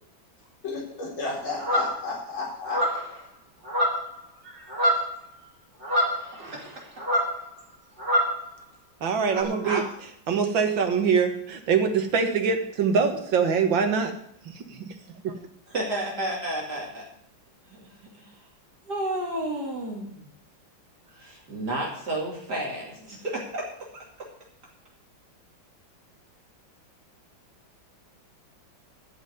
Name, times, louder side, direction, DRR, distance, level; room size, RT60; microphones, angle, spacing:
voice 1, 0.6-2.8, left 3 dB, 80° left, -4 dB, 5.0 m, -32 dB
sound 1, 1.6-2.0 2.6-3.1 3.6-4.2 4.5-5.1 5.8-6.7 7.0-7.4 8.0-8.4 9.3-9.4, equal, 35° right, 3.4 m, -25 dB
voice 2, 9.0-9.8 10.3-14.1 14.6-14.9 15.2-15.3, right 6 dB, 70° right, 6 dB, 2.2 m, -24 dB
voice 3, 15.7-17.0 17.7-17.8 18.2-18.3 18.8-20.2 21.1-23.6, right 1 dB, 55° right, -3 dB, 3.3 m, -31 dB
13.0 x 5.7 x 9.3 m, 0.71 s
omnidirectional pair, 2.2 m